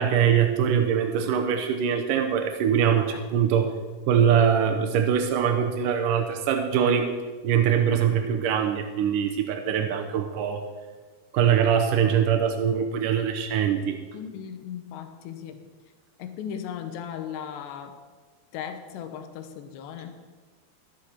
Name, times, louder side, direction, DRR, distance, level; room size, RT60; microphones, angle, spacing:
voice 1, 0.0-3.7 4.1-7.1 7.4-10.7 11.3-14.0, right 8 dB, 85° right, 5 dB, 1.9 m, -23 dB
voice 2, 14.1-15.6 16.2-18.0 18.5-20.2, left 8 dB, 85° left, 8 dB, 3.1 m, -37 dB
13.5 x 11.5 x 4.4 m, 1.4 s
omnidirectional pair, 4.9 m